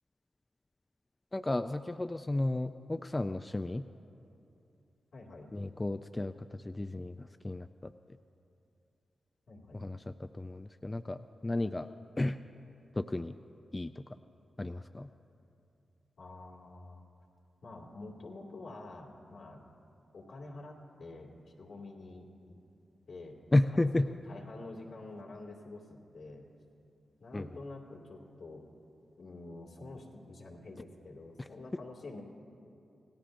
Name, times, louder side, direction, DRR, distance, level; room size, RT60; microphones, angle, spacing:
voice 1, 1.3-3.8 5.5-7.9 9.7-11.9 12.2-12.4 12.9-13.3 13.7-14.0 14.6-15.1 23.5-24.1 27.3-27.5 31.4-31.5, left 2 dB, 20° left, 9 dB, 0.3 m, -33 dB
voice 2, 5.1-5.5 9.5-9.8 16.2-17.0 17.6-19.6 20.1-21.3 21.6-22.6 23.1-23.4 23.9-26.5 27.2-28.6 29.2-32.2, left 2 dB, 75° left, -2 dB, 2.3 m, -47 dB
27.5 x 17.5 x 2.6 m, 2.7 s
wide cardioid pair, 110°, 0 cm